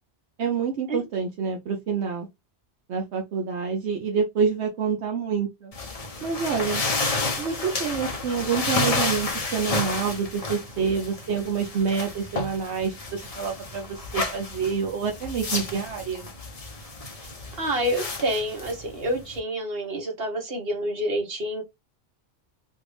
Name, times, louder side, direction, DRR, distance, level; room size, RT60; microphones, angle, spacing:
voice 1, 0.4-2.3 2.9-5.7 6.2-6.8 7.4-16.3, right 6 dB, 75° right, 1.0 m, -27 dB
sound 1, 5.7-19.4, left 3 dB, 40° left, 0.8 m, -31 dB
voice 2, 17.6-21.6, equal, 60° right, 1.5 m, -28 dB
3.3 x 2.5 x 3.3 m
omnidirectional pair, 1.2 m